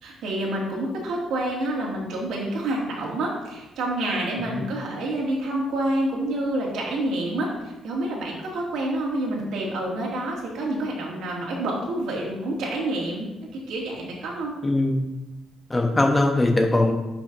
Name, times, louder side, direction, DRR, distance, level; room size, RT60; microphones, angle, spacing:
voice 1, 0.0-14.5, right 1 dB, 80° right, -3 dB, 2.3 m, -28 dB
voice 2, 14.6-15.1 15.7-16.9, left 2 dB, 20° left, 2 dB, 1.0 m, -21 dB
11.5 x 5.9 x 2.7 m, 1.0 s
cardioid pair, 90°, 0 cm